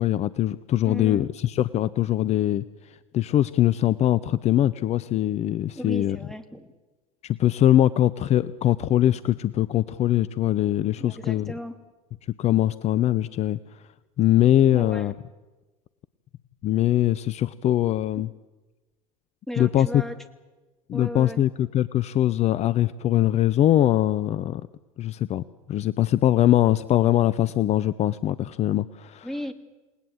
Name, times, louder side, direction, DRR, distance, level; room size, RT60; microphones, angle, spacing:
voice 1, 0.0-2.6 3.1-6.2 7.2-11.5 12.4-13.6 14.2-15.1 16.6-18.3 19.6-20.0 20.9-24.6 25.0-25.4 25.7-29.3, left 12 dB, 40° left, 16 dB, 0.8 m, -22 dB
voice 2, 0.8-1.3 5.7-6.7 11.0-11.7 14.7-15.1 19.5-20.1 20.9-21.4 29.2-29.5, equal, ahead, 7 dB, 2.8 m, -35 dB
28.5 x 19.0 x 8.0 m, 1.2 s
hypercardioid pair, 80°, 18 cm